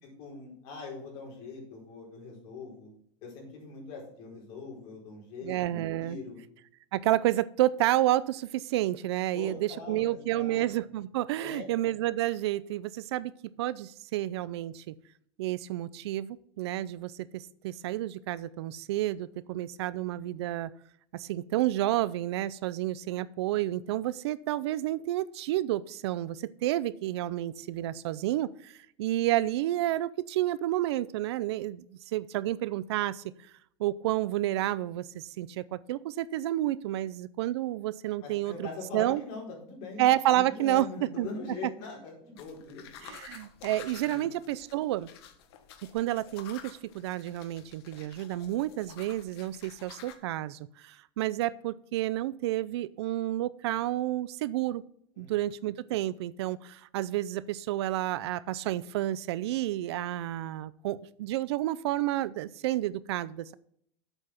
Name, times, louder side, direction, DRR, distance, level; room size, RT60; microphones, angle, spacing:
voice 1, 0.0-2.9 3.2-6.4 9.3-10.7 11.4-11.6 38.2-43.1 43.6-43.7 44.0-44.3 55.2-55.3, left 4 dB, 45° left, -2 dB, 4.4 m, -42 dB
voice 2, 5.4-6.2 6.9-13.3 13.6-14.9 15.4-20.7 21.1-28.7 29.0-31.9 32.1-33.2 33.8-38.7 38.9-39.2 40.0-40.9 41.2-41.3 43.0-45.1 45.9-54.8 55.2-63.5, right 14 dB, 75° right, 19 dB, 0.5 m, -30 dB
sound 1, 42.4-50.2, left 9 dB, 65° left, 1.3 m, -50 dB
8.1 x 5.7 x 5.8 m, 0.66 s
supercardioid pair, 160°, 14 cm